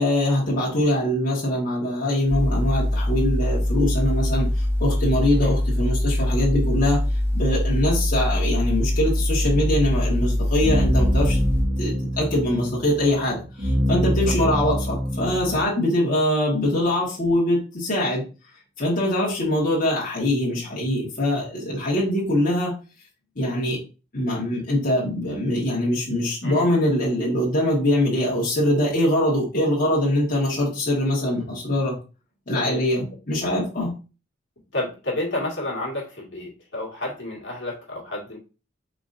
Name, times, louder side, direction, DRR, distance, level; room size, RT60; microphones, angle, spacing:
voice 1, 0.0-7.0 7.3-11.4 11.8-18.2 18.8-22.7 23.3-23.8 24.1-31.9 32.5-33.9, left 1 dB, 45° left, -6 dB, 1.6 m, -23 dB
sound 1, 2.2-11.6, left 1 dB, 10° left, 1.5 m, -23 dB
sound 2, 9.4-15.6, equal, 65° right, 1.7 m, -25 dB
voice 2, 34.7-38.4, left 1 dB, 70° left, -2 dB, 1.8 m, -30 dB
4.9 x 3.9 x 2.6 m, 0.32 s
head